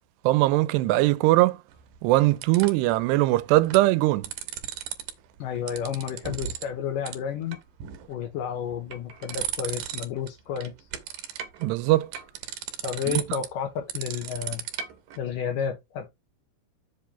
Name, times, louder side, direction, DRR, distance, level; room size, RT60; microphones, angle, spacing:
voice 1, 0.2-1.6 2.0-4.3 11.6-12.1 13.1-13.2, right 18 dB, 85° right, 2.7 m, -21 dB
sound 1, 1.7-2.9 3.5-3.9 4.1-5.1 5.4-6.7 7.1-7.2 7.5-8.1 8.6-10.3 10.6-15.2, right 10 dB, 70° right, 2.5 m, -35 dB
voice 2, 5.4-7.6 8.1-10.7 12.8-14.6 15.2-16.1, left 8 dB, 70° left, 2.2 m, -31 dB
7.7 x 3.5 x 5.5 m
omnidirectional pair, 4.8 m